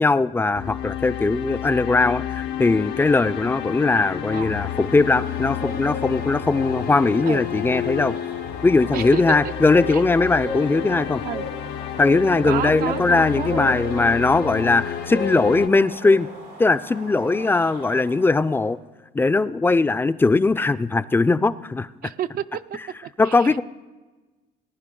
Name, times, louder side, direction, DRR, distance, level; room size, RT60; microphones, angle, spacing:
voice 1, 0.0-8.1 8.6-11.2 12.0-16.3 16.6-18.8 19.1-21.9 23.2-23.6, left 3 dB, 15° left, 16 dB, 0.3 m, -20 dB
sound 1, 0.5-15.7, left 11 dB, 85° left, 0.7 m, -30 dB
sound 2, 4.1-18.5, equal, 85° right, 4.7 m, -37 dB
voice 2, 12.5-13.7 22.0-23.6, right 11 dB, 60° right, 12 dB, 0.4 m, -31 dB
19.0 x 10.5 x 3.8 m, 1.2 s
cardioid pair, 110°, 17 cm